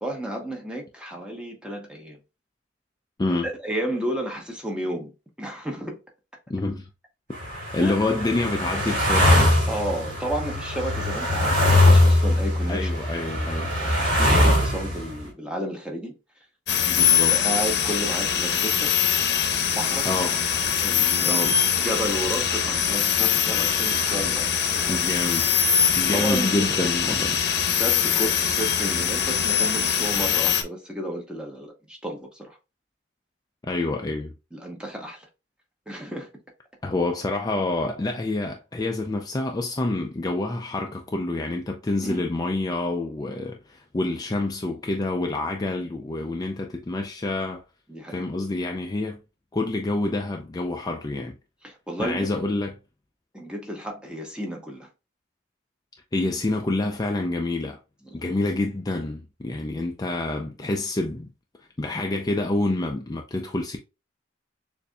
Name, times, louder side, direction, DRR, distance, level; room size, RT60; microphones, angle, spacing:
voice 1, 0.0-2.2 3.4-5.1 5.4-6.0 7.8-8.0 9.7-12.9 13.2-16.2 17.1-18.9 19.7-20.1 20.8-21.4 21.8-25.0 26.1-26.8 27.7-32.6 34.5-35.3 35.9-36.3 42.0-42.2 47.9-48.2 51.6-52.3 53.3-54.9 58.1-58.3, right 1 dB, 5° right, 1.0 m, -32 dB
voice 2, 6.5-6.9 7.4-9.5 12.7-13.7 16.8-17.4 20.0-20.4 21.2-21.6 24.9-25.5 26.0-27.4 33.6-34.3 36.8-47.6 48.1-49.2 49.5-51.3 52.0-52.7 56.1-57.8 58.1-61.3 61.8-63.8, left 2 dB, 20° left, 0.4 m, -27 dB
sound 1, 7.3-15.2, left 1 dB, 50° right, 2.2 m, -21 dB
sound 2, 16.7-30.6, left 8 dB, 65° left, 0.8 m, -23 dB
6.6 x 2.6 x 2.3 m
head